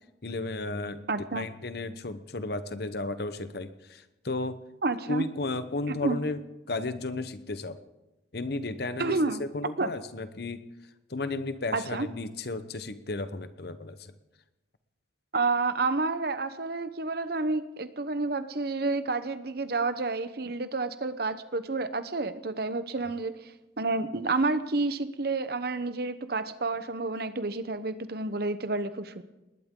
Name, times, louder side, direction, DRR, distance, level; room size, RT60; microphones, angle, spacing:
voice 1, 0.2-4.6 5.1-7.8 8.3-10.6 11.1-14.1, left 2 dB, 60° left, 11 dB, 1.0 m, -34 dB
voice 2, 1.1-1.5 4.8-5.2 6.0-6.2 9.0-9.4 9.8-9.9 11.7-12.1 15.3-23.4 23.8-29.2, right 3 dB, 55° right, 12 dB, 0.9 m, -29 dB
20.0 x 19.0 x 3.8 m, 1.0 s
head